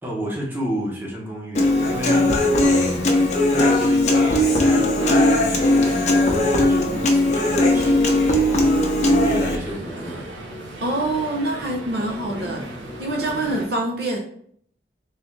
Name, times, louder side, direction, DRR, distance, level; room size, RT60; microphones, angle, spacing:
voice 1, 0.0-3.1 3.4-8.7 9.1-10.3, equal, 10° right, -3 dB, 0.9 m, -31 dB
Human voice / Acoustic guitar, 1.5-9.6, left 1 dB, 40° left, 0.6 m, -18 dB
sound 1, 1.7-13.7, right 1 dB, 90° right, 0.9 m, -35 dB
voice 2, 10.8-12.7 13.0-14.2, right 2 dB, 60° right, 1 dB, 0.6 m, -25 dB
3.8 x 3.1 x 3.2 m, 0.63 s
head